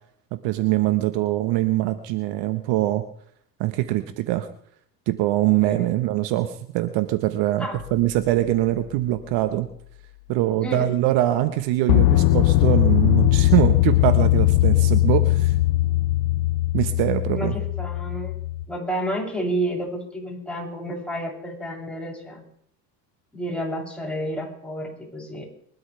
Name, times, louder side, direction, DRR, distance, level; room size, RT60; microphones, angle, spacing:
voice 1, 0.3-3.0 3.6-4.5 5.1-9.7 10.3-15.5 16.7-17.5, right 15 dB, 60° right, 10 dB, 1.4 m, -23 dB
sound 1, 7.8-8.0 11.9-18.7, left 16 dB, 55° left, 0.8 m, -19 dB
voice 2, 17.3-18.4 18.7-22.4 23.3-25.4, right 1 dB, ahead, -3 dB, 7.9 m, -30 dB
23.5 x 12.5 x 3.4 m, 0.64 s
hypercardioid pair, 70°, 48 cm